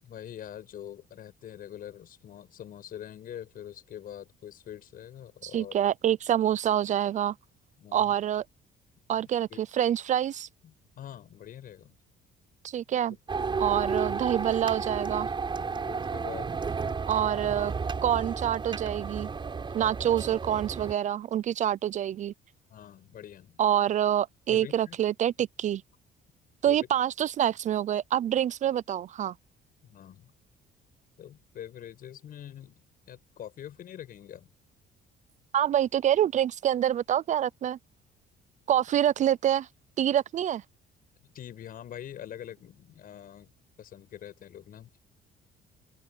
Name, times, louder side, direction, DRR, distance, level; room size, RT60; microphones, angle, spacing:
voice 1, 0.0-5.8 7.8-8.1 9.5-9.6 10.6-12.0 15.5-17.0 22.7-23.6 24.5-25.0 26.6-26.9 29.8-30.3 31.2-34.5 41.3-43.5 43.8-44.9, left 10 dB, 55° left, 7.8 m, -44 dB
voice 2, 5.4-7.3 7.9-8.4 9.1-10.5 12.6-13.2 13.6-15.3 17.1-17.7 18.0-19.3 19.7-22.3 23.6-25.8 26.6-29.3 35.5-37.8 38.7-39.7 40.0-40.6, right 10 dB, 45° right, 0.5 m, -26 dB
sound 1, 13.3-20.9, right 5 dB, 30° right, 5.6 m, -32 dB
open air
cardioid pair, 110°, 17 cm